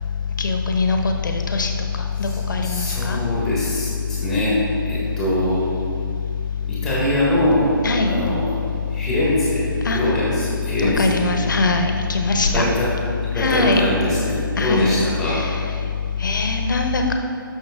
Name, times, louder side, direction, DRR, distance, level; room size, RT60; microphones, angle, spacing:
voice 1, 0.4-1.7 2.0-3.2 7.8-8.1 9.8-10.1 10.8-12.7 13.4-13.8 14.6-15.0 15.3-15.6 16.2-17.1, left 3 dB, 60° left, 4 dB, 1.1 m, -21 dB
voice 2, 2.6-4.6 4.9-5.6 6.7-7.7 8.0-8.4 8.9-9.6 9.9-11.6 12.5-12.9 13.3-15.4, left 1 dB, 5° left, -7 dB, 1.4 m, -22 dB
12.5 x 6.1 x 3.7 m, 2.4 s
hypercardioid pair, 170°, 12 cm